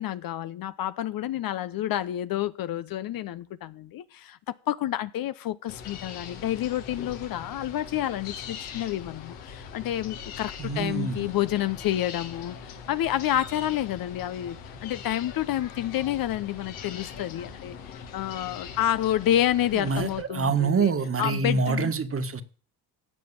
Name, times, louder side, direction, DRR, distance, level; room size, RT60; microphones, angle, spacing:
voice 1, 0.0-20.9 21.2-21.9, left 12 dB, 50° left, 0.8 m, -29 dB
sound 1, 5.7-20.2, left 7 dB, 80° left, 2.4 m, -41 dB
voice 2, 10.6-11.3 19.7-22.4, right 5 dB, 30° right, 1.7 m, -26 dB
16.5 x 5.9 x 8.8 m
hypercardioid pair, 65°, 45 cm